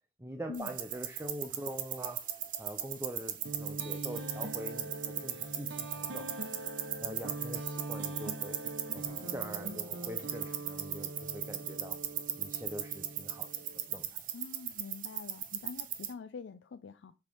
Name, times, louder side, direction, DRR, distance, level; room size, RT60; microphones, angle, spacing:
voice 1, 0.2-2.3 2.6-6.5 7.0-8.6 8.9-12.0 12.3-13.6 13.9-14.2, right 1 dB, 15° right, 0.6 m, -44 dB
sound 1, 0.5-16.1, right 11 dB, 45° right, 0.8 m, -39 dB
sound 2, 3.4-14.0, right 2 dB, 80° right, 1.0 m, -43 dB
Acoustic guitar, 9.0-12.2, left 1 dB, 40° left, 3.3 m, -60 dB
voice 2, 14.3-17.1, left 5 dB, 75° left, 0.4 m, -45 dB
7.3 x 3.3 x 5.4 m
head